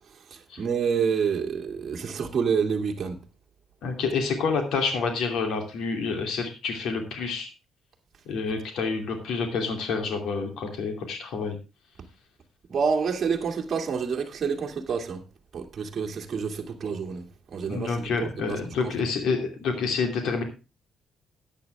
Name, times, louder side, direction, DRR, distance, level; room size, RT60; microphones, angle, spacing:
voice 1, 0.6-3.2 12.7-15.2 15.5-17.2 17.5-18.6, right 6 dB, 35° right, 2.2 m, -28 dB
voice 2, 3.8-7.5 8.3-11.6 17.7-20.4, left 4 dB, 75° left, 2.8 m, -28 dB
13.0 x 9.8 x 3.4 m
cardioid pair, 170°, 0 cm